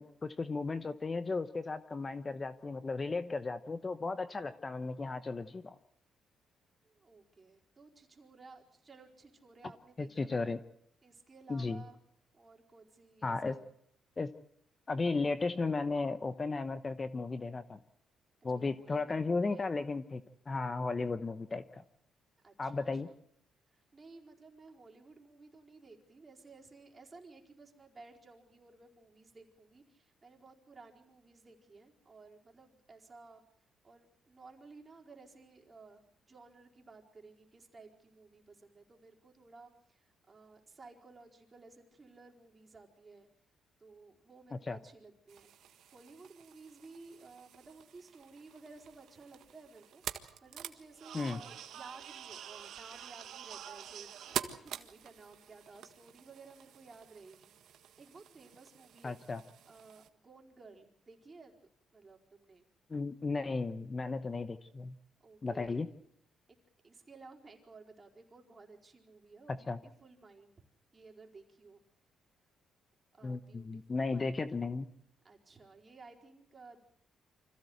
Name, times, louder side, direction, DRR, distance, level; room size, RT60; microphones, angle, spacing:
voice 1, 0.0-5.8 10.0-10.6 11.5-11.8 13.2-13.5 14.2-14.3 14.9-17.8 18.4-21.8 22.6-23.1 44.5-44.8 51.1-51.4 59.0-59.4 62.9-64.9 65.4-65.9 69.5-69.8 73.2-74.9, left 3 dB, 30° left, 12 dB, 1.0 m, -35 dB
voice 2, 6.8-10.6 11.0-12.0 12.3-13.7 18.5-19.7 22.4-23.0 23.7-33.4 33.8-43.3 43.8-50.0 50.4-59.2 59.7-61.5 61.9-62.6 65.2-65.8 66.8-70.6 70.9-71.8 73.1-74.4 75.2-76.8, right 3 dB, 30° right, 1 dB, 4.5 m, -56 dB
sound 1, 45.3-60.1, right 10 dB, 75° right, 1.6 m, -47 dB
25.5 x 16.0 x 8.0 m, 0.72 s
cardioid pair, 90°, 0 cm